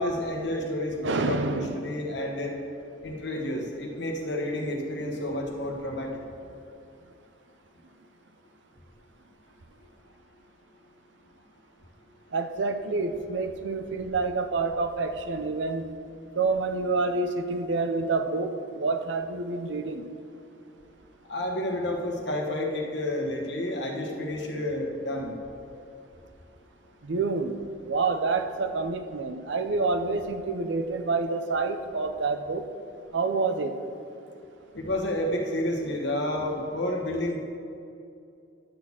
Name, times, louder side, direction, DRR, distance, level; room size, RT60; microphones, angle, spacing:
voice 1, 0.0-2.5 3.0-6.1 21.3-25.4 34.7-37.4, left 1 dB, 70° left, 1 dB, 1.2 m, -30 dB
voice 2, 1.0-1.9 12.3-15.9 16.4-20.0 27.0-32.7 33.1-33.8, right 3 dB, 75° right, 8 dB, 0.6 m, -28 dB
11.5 x 4.2 x 7.2 m, 2.6 s
head